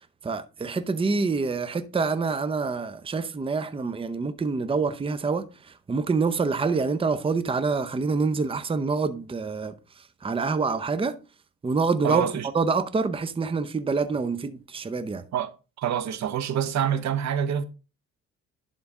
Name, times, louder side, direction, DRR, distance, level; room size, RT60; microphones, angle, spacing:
voice 1, 0.2-9.7 10.2-11.2 11.6-12.3 12.5-15.2, right 4 dB, 20° right, 0.6 m, -26 dB
voice 2, 12.0-12.5 15.3-17.6, right 9 dB, 65° right, 0.8 m, -27 dB
11.0 x 3.9 x 3.6 m
cardioid pair, 90°, 30 cm